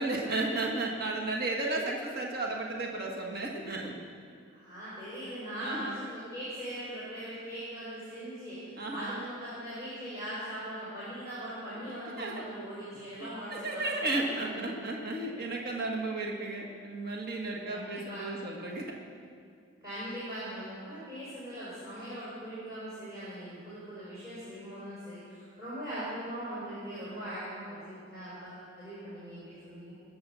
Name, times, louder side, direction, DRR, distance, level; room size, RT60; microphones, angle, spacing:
voice 1, 0.0-4.0 5.6-6.0 8.8-9.2 12.2-12.4 13.2-18.9, right 2 dB, 50° right, -1 dB, 1.6 m, -34 dB
voice 2, 4.5-14.7 17.6-18.3 19.8-29.9, right 1 dB, 20° right, -10 dB, 4.4 m, -40 dB
20.5 x 7.9 x 6.9 m, 2.2 s
head